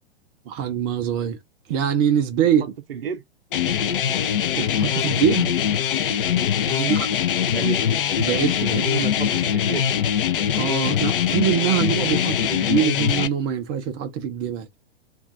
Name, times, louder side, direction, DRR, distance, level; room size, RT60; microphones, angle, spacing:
voice 1, 0.5-1.4 1.7-2.7 4.6-5.6 6.7-7.1 8.2-8.9 10.5-14.7, right 9 dB, 25° right, 0.4 m, -24 dB
voice 2, 2.9-3.2 6.7-7.0 7.5-7.8 8.7-9.8, right 7 dB, 65° right, 0.7 m, -30 dB
sound 1, 3.5-13.3, left 9 dB, 55° left, 0.6 m, -22 dB
2.4 x 2.3 x 3.6 m
figure-of-eight pair, 105°, 32 cm